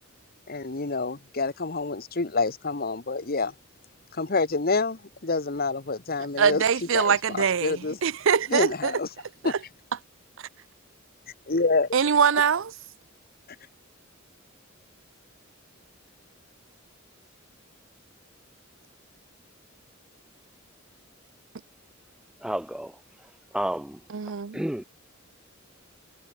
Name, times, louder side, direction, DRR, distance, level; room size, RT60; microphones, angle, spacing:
voice 1, 0.5-3.5 4.1-6.6 6.9-8.0 8.5-9.1 9.4-9.5 11.5-11.9, left 3 dB, 45° left, 1.4 m, -27 dB
voice 2, 6.4-8.9 9.4-9.5 11.9-12.7 24.1-24.6, right 7 dB, 65° right, 0.6 m, -23 dB
voice 3, 22.4-23.0 23.5-24.0 24.5-24.8, right 1 dB, 5° right, 0.3 m, -30 dB
head